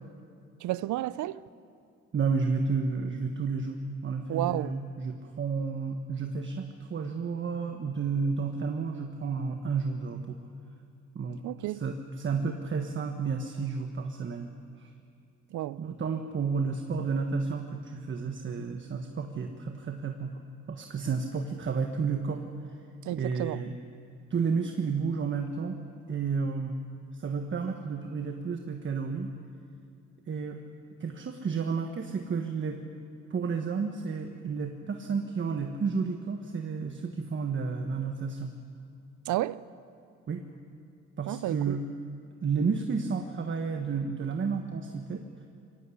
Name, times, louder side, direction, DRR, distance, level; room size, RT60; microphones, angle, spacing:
voice 1, 0.6-1.4 4.3-4.7 11.4-11.8 15.5-15.8 23.0-23.6 39.3-39.6 41.3-41.8, right 15 dB, 75° right, 0.6 m, -31 dB
voice 2, 2.1-10.4 11.1-11.4 11.7-14.5 14.8-14.9 15.8-20.4 20.7-22.5 23.1-23.8 24.3-25.8 26.1-26.8 27.1-29.3 30.3-30.6 31.0-32.8 33.3-38.5 40.3-40.4 41.2-41.8 42.4-45.2, right 5 dB, 40° right, 1.4 m, -31 dB
22.5 x 15.5 x 8.5 m
cardioid pair, 90°, 30 cm